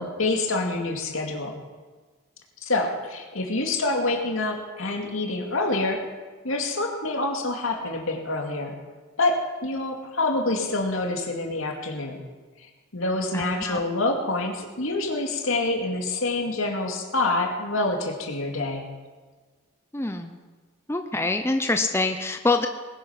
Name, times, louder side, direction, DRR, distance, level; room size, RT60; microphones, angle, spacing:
voice 1, 0.0-1.6 2.6-6.0 6.4-8.8 9.2-12.2 12.6-12.7 12.9-18.9, left 2 dB, 80° left, 2 dB, 2.4 m, -26 dB
voice 2, 13.3-13.8 19.9-20.4 20.9-22.7, left 2 dB, 10° left, 6 dB, 0.6 m, -25 dB
20.0 x 10.0 x 5.9 m, 1.4 s
head